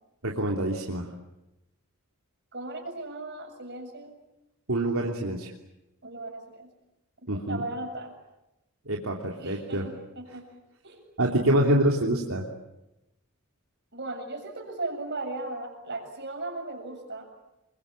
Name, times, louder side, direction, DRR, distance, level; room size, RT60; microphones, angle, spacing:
voice 1, 0.2-1.0 4.7-5.5 7.3-7.6 8.9-9.9 11.2-12.4, right 1 dB, 75° right, 0 dB, 3.2 m, -26 dB
voice 2, 2.5-4.2 6.0-6.7 7.3-8.1 9.4-10.5 10.8-11.0 13.9-17.3, right 2 dB, 55° right, 4 dB, 7.5 m, -37 dB
28.0 x 24.0 x 8.9 m, 0.93 s
head